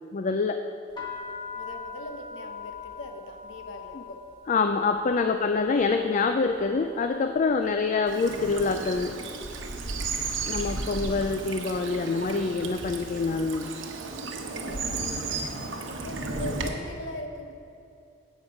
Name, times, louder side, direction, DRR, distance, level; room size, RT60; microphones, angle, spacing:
voice 1, 0.1-0.6 4.5-9.2 10.5-13.7, left 4 dB, 40° left, 7 dB, 0.4 m, -26 dB
sound 1, 0.9-8.8 9.1-9.8 10.4-10.7 10.9-12.4, left 5 dB, 25° left, 1.5 m, -43 dB
voice 2, 1.5-4.2 5.1-5.4 7.6-7.7 9.8-10.1 14.6-15.5 15.9-17.5, left 1 dB, 85° left, 4 dB, 1.1 m, -41 dB
Bird vocalization bird call bird song / Stream, 8.1-16.7, right 3 dB, 90° right, 1.0 m, -34 dB
11.5 x 8.2 x 4.8 m, 2.7 s
head